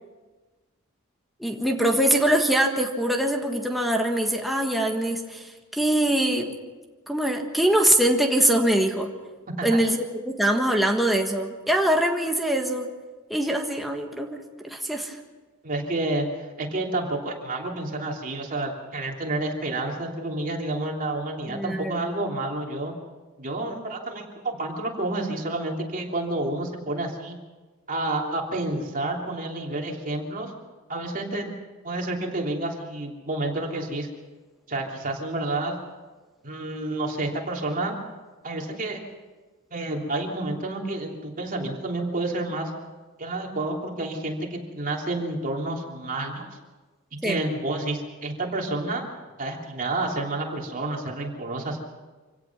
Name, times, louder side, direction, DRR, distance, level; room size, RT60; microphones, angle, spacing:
voice 1, 1.4-6.6 7.1-9.1 9.6-12.9 13.3-15.2 21.5-22.0 47.2-47.4, right 1 dB, ahead, 1 dB, 1.5 m, -23 dB
voice 2, 9.5-9.8 15.6-22.9 23.4-27.4 27.9-30.5 30.9-31.5 31.8-34.1 34.7-35.8 36.4-38.0 38.4-39.0 39.7-42.7 43.2-46.5 47.1-49.1 49.4-51.8, right 2 dB, 40° right, 0 dB, 3.1 m, -29 dB
25.5 x 17.0 x 6.1 m, 1.3 s
head